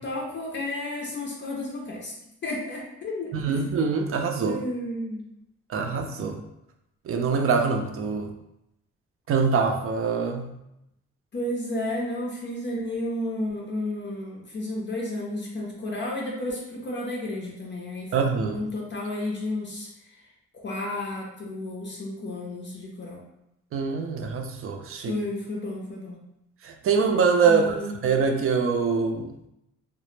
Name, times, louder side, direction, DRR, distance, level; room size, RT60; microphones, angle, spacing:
voice 1, 0.0-2.1 2.4-3.6 4.4-5.3 11.3-20.2 20.5-23.2 25.1-26.2 27.5-28.0, left 1 dB, 40° left, -2 dB, 0.5 m, -32 dB
voice 2, 3.3-4.6 5.7-6.4 7.1-8.3 9.3-10.5 18.1-18.6 23.7-25.1 26.6-27.7 28.0-29.3, right 5 dB, 45° right, 4 dB, 0.4 m, -24 dB
2.0 x 2.0 x 3.0 m, 0.84 s
cardioid pair, 90°, 30 cm